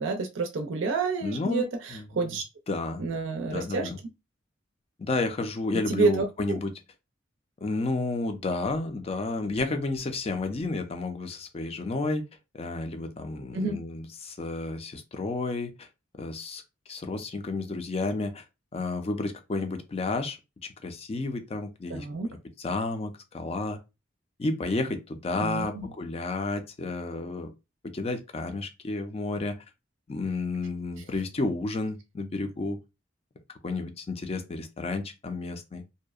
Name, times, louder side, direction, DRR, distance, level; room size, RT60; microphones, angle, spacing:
voice 1, 0.0-1.7 2.2-2.4 3.0-3.9 5.9-6.6 13.5-13.8 21.9-22.3 25.4-25.8, right 4 dB, 75° right, 0.4 m, -28 dB
voice 2, 1.2-3.0 3.5-4.0 5.0-6.7 7.6-12.2 12.5-15.9 16.2-16.6 16.9-18.4 18.7-20.4 20.8-23.8 24.4-27.5 27.9-29.6 30.1-32.8 33.6-35.8, left 3 dB, 30° left, 0.4 m, -31 dB
2.6 x 2.0 x 2.3 m
head